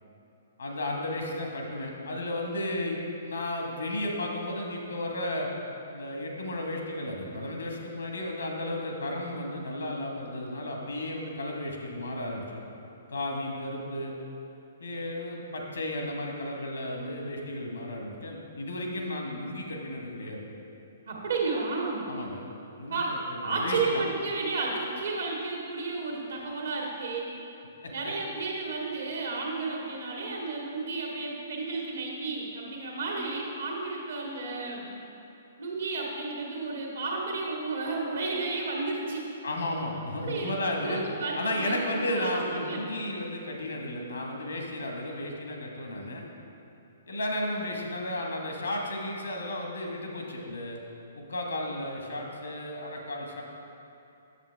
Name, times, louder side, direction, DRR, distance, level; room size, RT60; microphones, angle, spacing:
voice 1, 0.6-5.5 5.9-12.6 13.1-14.1 14.8-20.5 22.1-22.5 22.8-23.0 23.3-24.0 27.8-27.9 39.4-41.0 41.3-46.2 47.1-50.8 51.1-53.4, left 1 dB, 75° left, 1 dB, 1.3 m, -33 dB
voice 2, 21.1-22.1 22.9-23.1 23.4-27.3 27.9-34.9 35.6-39.3 40.2-42.8, right 3 dB, 70° right, -2 dB, 1.6 m, -32 dB
8.3 x 7.1 x 3.4 m, 2.8 s
figure-of-eight pair, 120°, 0 cm